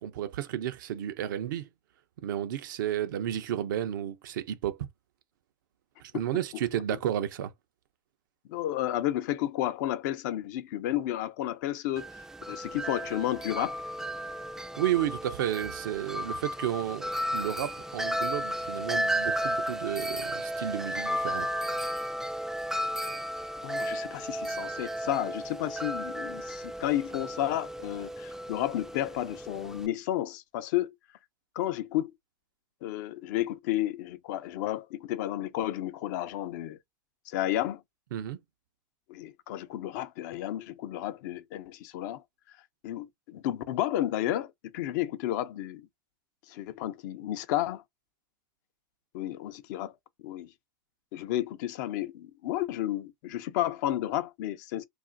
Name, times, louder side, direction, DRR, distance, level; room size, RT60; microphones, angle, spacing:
voice 1, 0.0-1.7 2.2-4.9 6.0-7.5 14.8-21.5 38.1-38.4, right 11 dB, 80° right, 0.6 m, -32 dB
voice 2, 8.5-13.8 23.6-30.9 31.6-32.1 32.8-36.8 37.3-37.8 39.1-42.2 42.8-45.9 46.5-47.8 49.1-49.9 50.2-50.5 51.1-54.8, left 13 dB, 65° left, 0.5 m, -32 dB
Wind chime, 12.0-29.9, equal, 5° right, 0.3 m, -34 dB
2.4 x 2.4 x 3.7 m
supercardioid pair, 115°, 10 cm